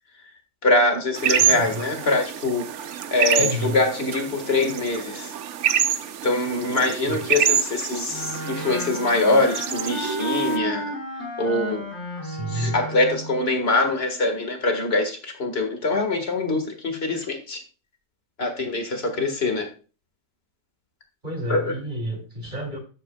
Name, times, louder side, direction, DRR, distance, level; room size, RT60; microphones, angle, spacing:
voice 1, 0.6-2.7 3.1-5.3 6.2-10.9 11.4-11.8 12.5-17.6 18.4-19.7 21.5-21.6, left 2 dB, 55° left, 4 dB, 2.0 m, -23 dB
sound 1, 1.2-10.6, right 9 dB, 80° right, 1.0 m, -27 dB
voice 2, 1.4-2.0 3.4-3.8 7.0-7.3 12.2-12.8 21.2-22.8, equal, 40° right, 1 dB, 2.8 m, -31 dB
Wind instrument woodwind instrument, 8.1-13.4, right 1 dB, 80° left, 5.7 m, -32 dB
12.0 x 8.6 x 2.3 m, 0.36 s
omnidirectional pair, 1.2 m